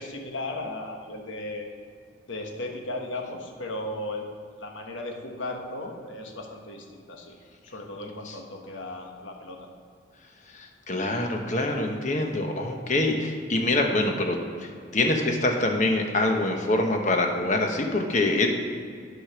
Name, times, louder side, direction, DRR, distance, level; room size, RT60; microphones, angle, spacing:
voice 1, 0.0-1.7 2.3-7.4 7.6-9.7, left 2 dB, 80° left, 2 dB, 1.3 m, -36 dB
voice 2, 10.5-18.5, left 2 dB, 40° left, 3 dB, 1.0 m, -25 dB
9.6 x 5.0 x 6.1 m, 2.2 s
head